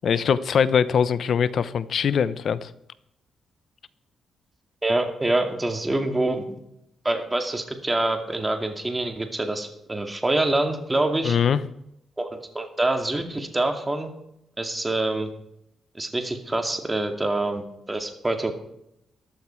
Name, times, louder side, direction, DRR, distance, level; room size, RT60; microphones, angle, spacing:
voice 1, 0.0-2.7 11.2-11.6, left 7 dB, 65° left, 15 dB, 0.8 m, -22 dB
voice 2, 4.8-6.6 7.0-11.4 12.2-14.1 14.6-15.3 15.9-18.5, right 2 dB, 20° right, 5 dB, 2.3 m, -26 dB
14.5 x 11.5 x 4.6 m, 0.79 s
cardioid pair, 75°, 0 cm